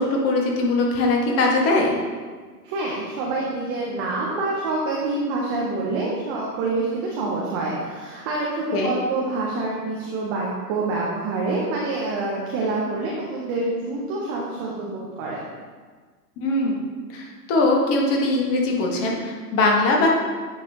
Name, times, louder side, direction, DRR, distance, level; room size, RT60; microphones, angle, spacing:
voice 1, 0.0-2.0 8.7-8.9 16.4-20.1, left 2 dB, 30° left, 0 dB, 1.3 m, -21 dB
voice 2, 2.6-15.5, right 2 dB, 15° right, -4 dB, 0.4 m, -26 dB
9.2 x 5.3 x 2.8 m, 1.5 s
hypercardioid pair, 110°, 49 cm